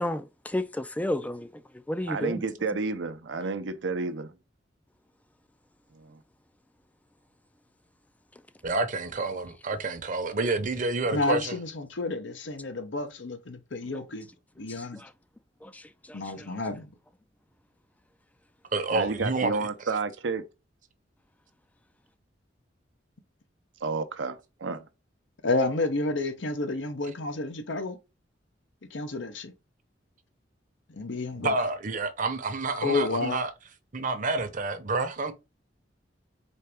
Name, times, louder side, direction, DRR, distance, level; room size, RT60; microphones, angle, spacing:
voice 1, 0.0-1.5 1.9-2.4 15.6-15.7, left 1 dB, 10° left, 0.3 m, -30 dB
voice 2, 2.1-4.3 6.0-6.2 18.9-20.5 23.8-24.9, right 4 dB, 80° right, 0.6 m, -31 dB
voice 3, 8.6-11.5 18.7-19.7 31.4-33.5 33.9-35.3, right 3 dB, 45° right, 0.8 m, -29 dB
voice 4, 11.1-14.3 14.6-15.0 16.1-16.9 25.4-28.0 28.9-29.5 30.9-31.5 32.8-33.4, left 2 dB, 85° left, 0.8 m, -30 dB
4.3 x 3.3 x 3.5 m
head